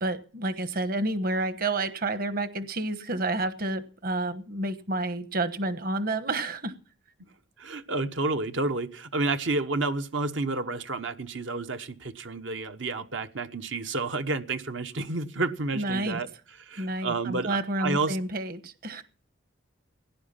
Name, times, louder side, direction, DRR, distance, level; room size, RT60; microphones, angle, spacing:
voice 1, 0.0-6.7 15.7-16.2 16.8-19.0, right 2 dB, 50° right, 11 dB, 1.2 m, -30 dB
voice 2, 7.6-16.3 16.6-18.2, right 3 dB, 75° right, 8 dB, 1.1 m, -30 dB
17.0 x 10.5 x 5.7 m, 0.39 s
head